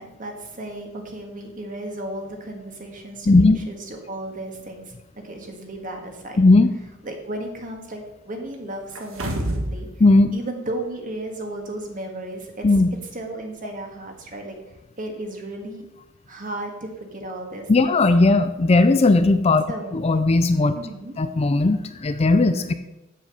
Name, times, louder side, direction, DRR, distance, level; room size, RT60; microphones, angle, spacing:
voice 1, 0.0-4.9 5.2-6.4 7.0-9.9 10.3-12.7 13.1-14.6 15.0-15.9 16.3-18.0 19.7-20.0 20.7-21.1, right 1 dB, 40° right, 3 dB, 1.7 m, -34 dB
voice 2, 3.3-3.6 6.4-6.7 10.0-10.3 12.6-12.9 17.7-19.6 19.9-20.8 21.2-22.7, left 2 dB, 30° left, 10 dB, 0.4 m, -17 dB
sound 1, 9.0-9.8 10.2-10.3, right 1 dB, 80° right, 1.4 m, -27 dB
7.6 x 7.5 x 6.6 m, 0.99 s
head